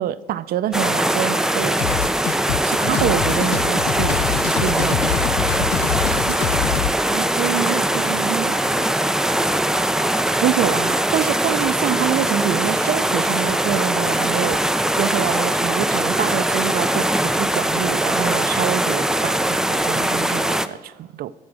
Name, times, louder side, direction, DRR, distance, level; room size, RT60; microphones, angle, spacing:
voice 1, 0.0-1.8 2.6-4.2 4.6-5.7 10.4-14.6 15.0-21.3, right 11 dB, 60° right, 15 dB, 0.5 m, -26 dB
sound 1, 0.7-20.7, right 1 dB, 5° right, 0.4 m, -21 dB
sound 2, 1.8-6.9, left 12 dB, 80° left, 0.5 m, -25 dB
voice 2, 7.1-9.1 20.8-21.1, right 11 dB, 90° right, 4 dB, 0.8 m, -29 dB
14.0 x 7.1 x 6.4 m, 1.2 s
cardioid pair, 110°, 17 cm